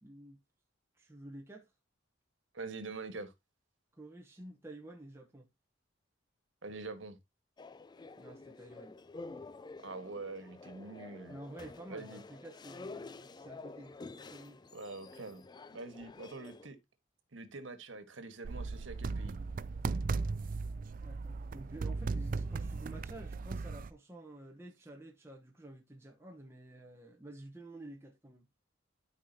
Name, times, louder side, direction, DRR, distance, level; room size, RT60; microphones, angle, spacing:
voice 1, 0.0-0.4 0.9-1.7 3.9-5.5 8.2-9.0 11.3-14.0 14.3-14.6 21.0-28.5, right 1 dB, 15° right, 1.0 m, -50 dB
voice 2, 2.5-3.3 6.6-7.2 9.8-11.4 11.9-12.2 14.7-15.4 15.7-16.8 17.3-19.4, right 3 dB, 80° right, 1.5 m, -44 dB
sound 1, 7.6-16.7, left 3 dB, 20° left, 0.4 m, -49 dB
sound 2, 18.4-23.9, right 4 dB, 45° right, 0.4 m, -37 dB
12.5 x 5.0 x 2.8 m
head